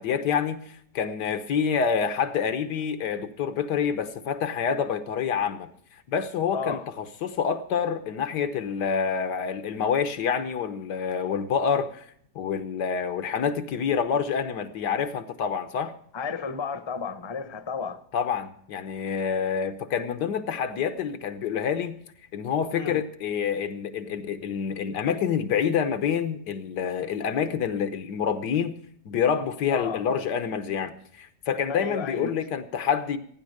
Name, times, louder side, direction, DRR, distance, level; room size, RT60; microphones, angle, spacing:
voice 1, 0.0-5.7 6.1-12.1 12.4-15.9 18.1-22.0 22.3-28.8 29.1-33.2, left 7 dB, 85° left, 1.6 m, -27 dB
voice 2, 6.5-6.9 16.1-18.0 22.7-23.0 29.7-30.0 31.7-32.3, left 5 dB, 25° left, 0.7 m, -32 dB
15.5 x 9.7 x 6.5 m
omnidirectional pair, 1.8 m